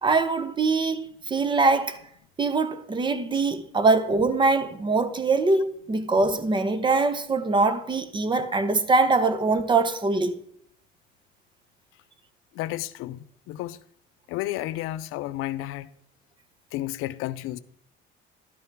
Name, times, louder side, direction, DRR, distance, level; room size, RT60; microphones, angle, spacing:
voice 1, 0.0-2.0 2.4-10.4, right 3 dB, 20° right, 0.6 m, -23 dB
voice 2, 12.5-13.8 14.3-15.9 16.7-17.6, left 15 dB, 90° left, 0.5 m, -32 dB
12.0 x 5.7 x 4.5 m
cardioid pair, 135°, 21 cm